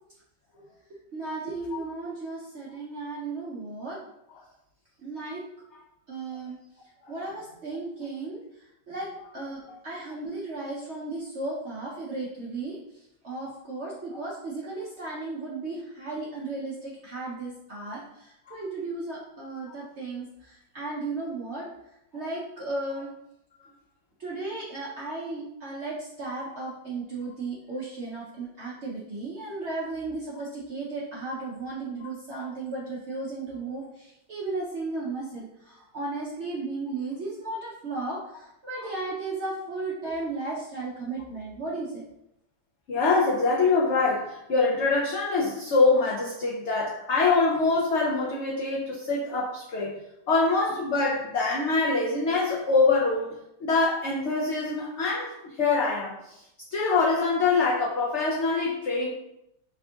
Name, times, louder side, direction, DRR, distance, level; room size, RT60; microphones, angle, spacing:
voice 1, 1.1-4.0 5.0-5.4 6.1-6.6 7.1-8.4 8.9-12.8 13.2-21.7 22.1-23.1 24.2-42.0, right 3 dB, 65° right, -5 dB, 0.6 m, -35 dB
voice 2, 42.9-49.9 50.3-53.4 53.6-56.1 56.7-59.1, left 3 dB, 85° left, -4 dB, 0.6 m, -24 dB
3.5 x 2.3 x 3.6 m, 0.83 s
omnidirectional pair, 1.9 m